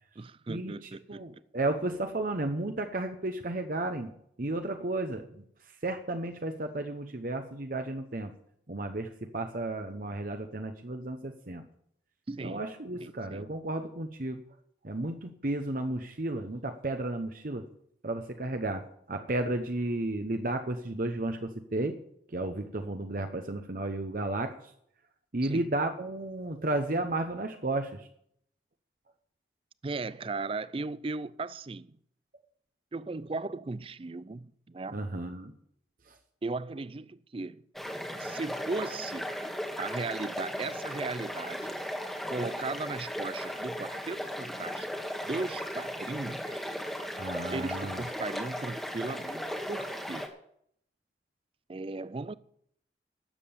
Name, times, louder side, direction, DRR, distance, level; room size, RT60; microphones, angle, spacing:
voice 1, 0.2-1.4 12.3-12.7 13.0-13.5 25.4-25.7 29.8-32.0 32.9-35.1 36.4-37.6 38.2-39.3 39.8-41.8 42.3-46.7 47.5-50.3 51.7-52.3, right 3 dB, 30° right, 0.4 m, -37 dB
voice 2, 1.1-4.1 4.4-5.2 5.8-8.3 8.7-11.6 12.4-14.4 14.8-17.6 18.0-18.8 19.1-21.9 22.3-24.5 25.3-28.0 34.9-35.5 47.2-48.0, right 2 dB, 45° right, 0.9 m, -33 dB
sound 1, 37.8-50.3, equal, ahead, 1.3 m, -36 dB
12.0 x 7.6 x 8.6 m
head